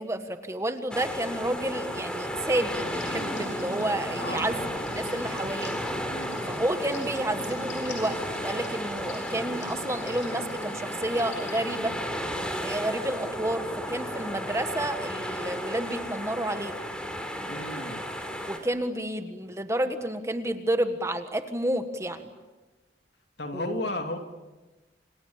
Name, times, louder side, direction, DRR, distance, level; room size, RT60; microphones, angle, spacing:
voice 1, 0.0-4.7 4.9-5.7 6.5-11.9 12.6-16.7 18.4-22.3 23.5-23.8, right 1 dB, 15° right, 8 dB, 1.5 m, -30 dB
sound 1, 0.9-18.6, equal, 5° left, 3.6 m, -34 dB
sound 2, 2.7-12.5, left 1 dB, 85° left, 7.9 m, -43 dB
voice 2, 4.2-4.6 6.1-6.4 17.5-18.0 23.4-24.2, left 1 dB, 60° left, 5 dB, 2.7 m, -34 dB
29.0 x 27.5 x 7.4 m, 1.2 s
head